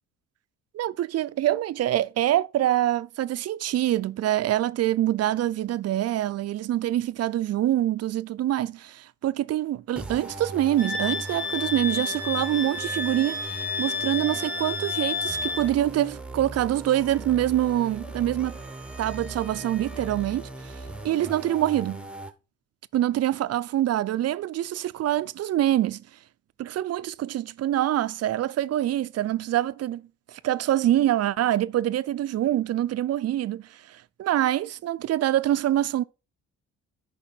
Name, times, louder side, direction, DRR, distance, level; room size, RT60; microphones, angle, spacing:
voice 1, 0.7-18.5 19.0-20.5 21.0-22.0 22.9-26.0 26.6-30.0 30.3-36.0, right 13 dB, 55° right, 0.5 m, -25 dB
sound 1, 10.0-22.3, right 2 dB, 5° right, 1.0 m, -39 dB
Wind instrument woodwind instrument, 10.8-15.7, left 4 dB, 85° left, 3.3 m, -30 dB
9.9 x 5.4 x 4.3 m
cardioid pair, 90°, 30 cm